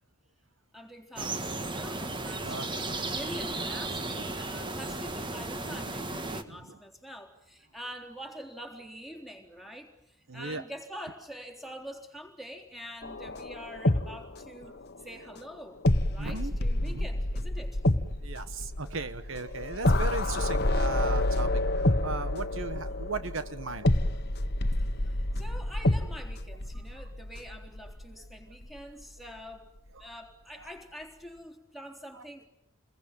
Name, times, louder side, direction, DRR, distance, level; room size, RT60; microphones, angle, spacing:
voice 1, 0.7-14.7 15.0-15.8 16.1-17.8 24.8-29.7 30.0-32.5, equal, ahead, 2 dB, 3.8 m, -45 dB
sound 1, 1.2-6.4, right 2 dB, 20° right, 1.7 m, -35 dB
voice 2, 6.5-6.8 10.3-10.6 16.2-16.6 16.8-17.1 18.2-23.9 30.6-30.7 32.1-32.2, right 3 dB, 65° right, 11 dB, 1.3 m, -37 dB
sound 2, 13.0-14.8 15.1-15.2 15.8-28.3 28.6-28.8, left 1 dB, 50° left, 1.3 m, -28 dB
29.0 x 21.5 x 9.2 m, 0.73 s
head